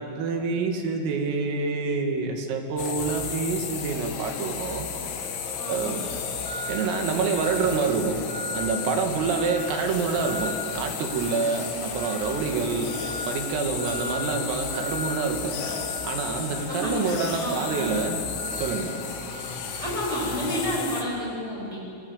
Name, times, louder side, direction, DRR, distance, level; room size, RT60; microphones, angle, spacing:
voice 1, 0.0-4.9 5.7-6.0 6.7-8.2 8.5-13.0 13.3-15.6 16.0-18.2 18.6-18.9, right 5 dB, 85° right, 4 dB, 5.0 m, -27 dB
sound 1, 2.8-21.0, left 6 dB, 70° left, 4.5 m, -33 dB
voice 2, 5.6-6.0 16.7-17.9 19.8-21.8, equal, 5° right, -3 dB, 7.6 m, -30 dB
sound 2, 6.4-7.0 7.4-7.8 8.3-8.8 9.2-9.7 10.1-10.6 11.0-11.5 12.0-12.4 12.9-13.3 13.8-14.2 14.7-15.1 15.6-19.8, equal, 25° left, 4.8 m, -38 dB
27.0 x 21.5 x 8.9 m, 2.6 s
omnidirectional pair, 5.8 m